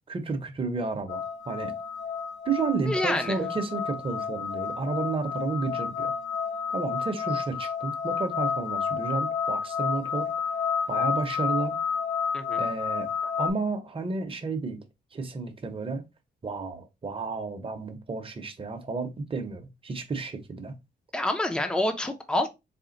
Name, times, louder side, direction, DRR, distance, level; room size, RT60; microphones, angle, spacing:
voice 1, 0.1-1.7 2.4-6.1 6.7-10.3 10.9-11.7 12.6-13.1 13.4-14.8 15.1-16.0 16.4-20.8, right 4 dB, 30° right, 0.8 m, -31 dB
sound 1, 1.1-13.5, left 6 dB, 85° left, 0.7 m, -30 dB
voice 2, 2.9-3.4 12.3-12.6 21.1-22.5, left 1 dB, 5° left, 0.6 m, -27 dB
4.2 x 2.2 x 3.8 m
wide cardioid pair, 130°, 19 cm